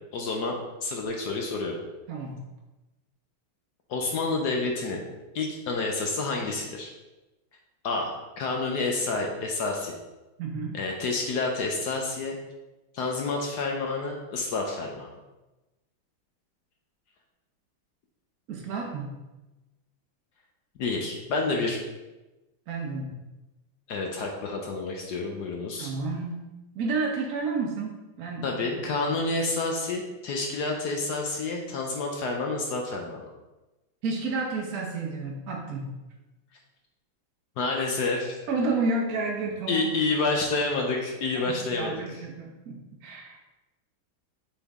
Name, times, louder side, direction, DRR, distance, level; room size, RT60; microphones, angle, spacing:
voice 1, 0.1-0.5 0.8-1.8 3.9-5.0 5.3-6.9 7.8-10.0 10.7-12.4 12.9-15.1 20.8-21.8 23.9-25.9 28.4-33.3 37.6-38.4 39.7-42.2, left 3 dB, 65° left, 1 dB, 1.1 m, -29 dB
voice 2, 2.1-2.4 10.4-10.7 18.5-19.2 22.7-23.2 25.8-26.5 26.7-28.5 34.0-35.9 38.5-39.9 41.3-43.4, right 3 dB, 55° right, -1 dB, 1.1 m, -31 dB
6.9 x 3.8 x 3.6 m, 1.1 s
omnidirectional pair, 2.2 m